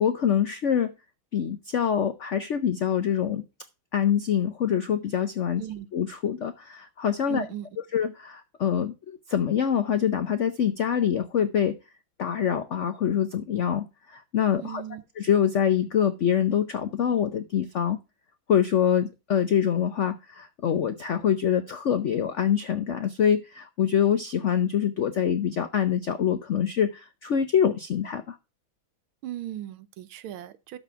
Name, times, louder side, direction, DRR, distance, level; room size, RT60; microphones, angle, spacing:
voice 1, 0.0-0.9 1.3-3.4 3.9-5.6 5.9-7.4 7.9-11.8 12.2-14.8 15.2-18.0 18.5-28.4, left 8 dB, 85° left, 0.6 m, -25 dB
voice 2, 7.3-7.7 14.6-15.0 29.2-30.8, right 12 dB, 85° right, 1.6 m, -37 dB
12.5 x 4.3 x 5.6 m
omnidirectional pair, 2.2 m